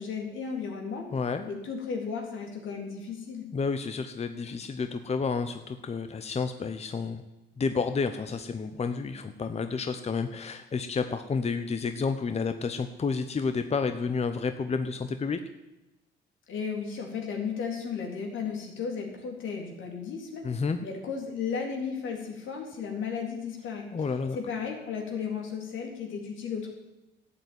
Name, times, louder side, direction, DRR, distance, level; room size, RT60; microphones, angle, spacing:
voice 1, 0.0-1.1 1.4-3.5 16.5-23.9 24.3-26.7, left 6 dB, 80° left, 1 dB, 3.6 m, -34 dB
voice 2, 1.1-1.5 3.5-7.2 7.6-15.4 20.4-20.8 23.9-24.4, left 5 dB, 30° left, 8 dB, 0.9 m, -30 dB
12.5 x 8.2 x 9.4 m, 1.0 s
cardioid pair, 90°, 20 cm